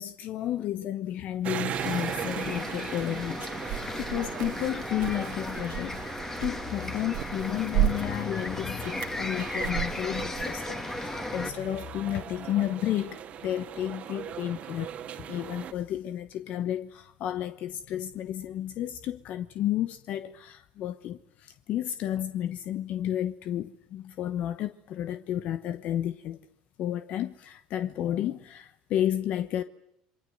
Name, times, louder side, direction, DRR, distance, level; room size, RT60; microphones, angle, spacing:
voice 1, 0.0-14.9 15.3-26.4 26.8-29.6, left 11 dB, 60° left, 1.0 m, -32 dB
sound 1, 1.4-15.7, right 9 dB, 50° right, 2.2 m, -39 dB
sound 2, 1.7-11.5, left 2 dB, 15° left, 2.6 m, -36 dB
sound 3, 3.6-10.4, right 14 dB, 75° right, 2.3 m, -34 dB
28.0 x 23.0 x 7.9 m
supercardioid pair, 85°, 3 cm